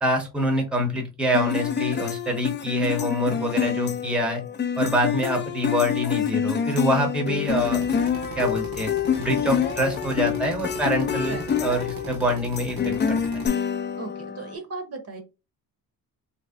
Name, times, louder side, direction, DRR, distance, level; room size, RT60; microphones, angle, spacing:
voice 1, 0.0-4.4 4.8-7.8 8.4-8.9 9.2-13.2, equal, 5° right, 3 dB, 0.7 m, -25 dB
sound 1, 1.3-14.5, left 7 dB, 30° left, 0.4 m, -27 dB
Drill, 7.5-13.5, right 2 dB, 70° right, 0.9 m, -39 dB
voice 2, 14.0-15.2, right 3 dB, 40° right, 5 dB, 0.8 m, -36 dB
3.0 x 2.7 x 3.4 m, 0.27 s
cardioid pair, 140°, 37 cm